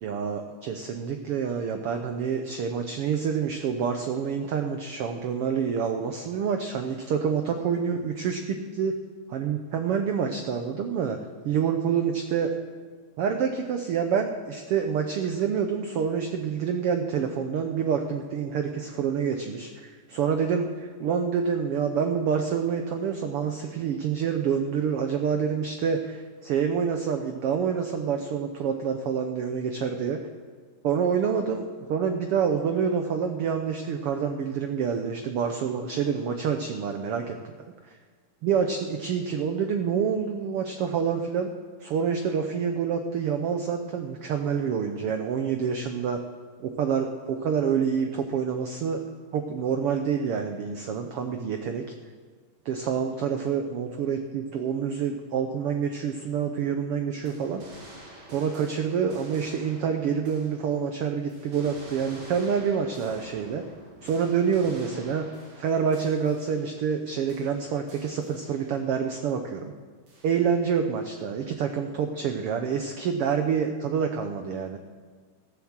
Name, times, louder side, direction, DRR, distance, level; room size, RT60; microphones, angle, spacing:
voice 1, 0.0-9.0 9.3-11.2 11.4-12.5 13.2-30.2 30.8-38.0 38.4-41.5 41.8-46.2 46.6-49.0 49.3-51.8 52.6-57.6 58.3-63.6 64.0-65.3 65.5-69.7 70.2-74.8, right 7 dB, 85° right, 6 dB, 1.2 m, -27 dB
sound 1, 57.3-61.0 61.3-67.0 67.3-68.9 70.1-70.8, right 1 dB, 50° right, 4.1 m, -49 dB
16.0 x 7.2 x 7.3 m, 1.5 s
omnidirectional pair, 3.6 m